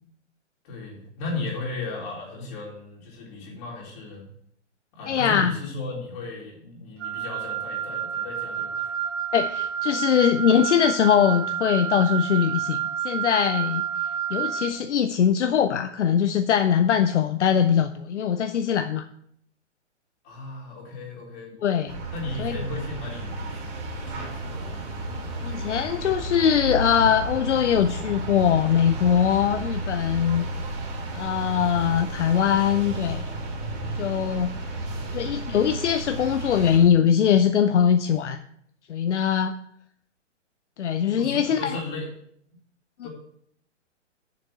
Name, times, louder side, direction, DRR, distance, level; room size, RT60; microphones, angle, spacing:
voice 1, 0.6-4.3 4.9-8.9 20.2-21.5 22.1-24.9 34.2-34.6 34.9-35.4 41.1-42.1 43.0-43.1, left 3 dB, 40° left, -3 dB, 3.9 m, -36 dB
voice 2, 5.1-5.6 9.3-12.8 13.0-13.8 14.3-19.1 21.6-22.0 22.4-22.6 25.4-30.5 31.1-33.2 34.0-34.5 35.1-38.4 38.9-39.6 40.8-41.8 43.0-43.1, left 8 dB, 75° left, 9 dB, 0.7 m, -22 dB
Wind instrument woodwind instrument, 7.0-14.8, right 9 dB, 90° right, 2.7 m, -29 dB
sound 1, 21.9-36.8, right 2 dB, 50° right, 3.1 m, -33 dB
6.9 x 6.6 x 6.1 m, 0.68 s
hypercardioid pair, 130°, 36 cm